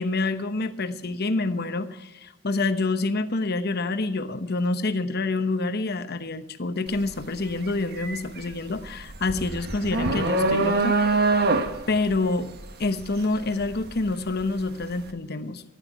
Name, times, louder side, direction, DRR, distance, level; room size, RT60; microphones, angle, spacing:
voice 1, 0.0-11.2 11.9-12.5 12.8-15.6, left 3 dB, 55° left, 10 dB, 1.0 m, -27 dB
sound 1, 6.9-7.1 7.5-14.5, right 3 dB, 55° right, 1.3 m, -25 dB
15.0 x 11.0 x 4.7 m, 0.95 s
head